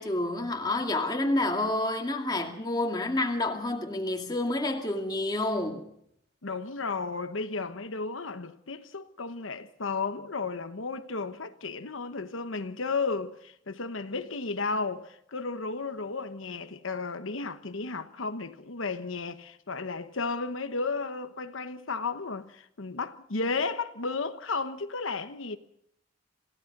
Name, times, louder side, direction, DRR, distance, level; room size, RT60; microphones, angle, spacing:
voice 1, 0.0-5.9, left 2 dB, 20° left, 2.3 m, -29 dB
voice 2, 6.4-25.6, left 4 dB, 85° left, 1.2 m, -33 dB
27.0 x 16.5 x 6.1 m
head